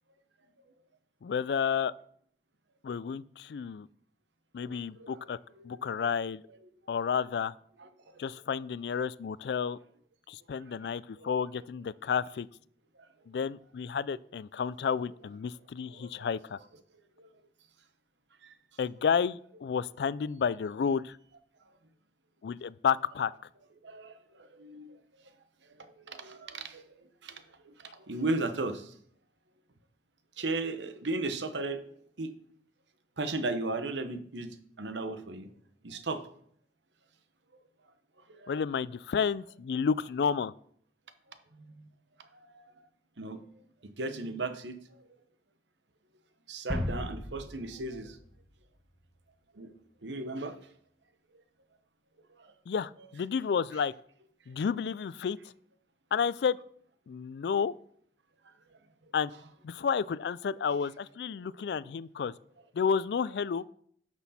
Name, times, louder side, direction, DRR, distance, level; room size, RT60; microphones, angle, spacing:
voice 1, 1.2-1.9 2.8-3.9 4.5-5.4 5.6-6.4 6.9-7.5 8.2-9.8 10.3-12.5 13.3-16.6 18.8-21.2 22.4-23.3 38.5-40.5 52.7-53.9 54.5-55.4 56.1-56.6 57.1-57.7 59.1-59.3 59.6-62.3 62.7-63.6, left 6 dB, 70° left, 19 dB, 0.3 m, -31 dB
voice 2, 4.7-5.1 5.6-5.7 10.8-10.9 11.2-11.3 15.9-16.1 17.2-17.3 18.4-18.6 23.8-25.0 25.8-26.9 27.2-28.9 30.4-31.8 32.2-32.3 33.2-35.5 35.8-36.2 38.3-38.5 41.5-41.9 42.5-42.6 43.2-43.4 43.8-44.8 46.5-48.2 49.5-49.7 50.0-50.6 52.4-52.5, right 2 dB, 85° right, 9 dB, 1.0 m, -36 dB
sound 1, 46.7-49.2, equal, ahead, 2.0 m, -37 dB
11.5 x 6.1 x 4.2 m, 0.63 s
head